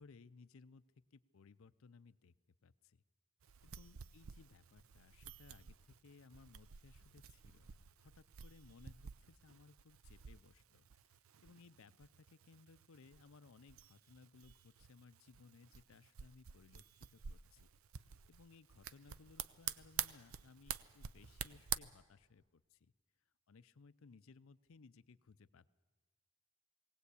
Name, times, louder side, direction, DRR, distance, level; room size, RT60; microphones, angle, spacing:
voice 1, 0.0-2.3 2.6-3.0 3.6-17.7 18.3-22.9 23.5-25.7, left 4 dB, 65° left, 15 dB, 0.5 m, -62 dB
sound 1, 3.4-21.8, right 10 dB, 70° right, 0.6 m, -49 dB
20.0 x 17.5 x 8.3 m, 1.4 s
head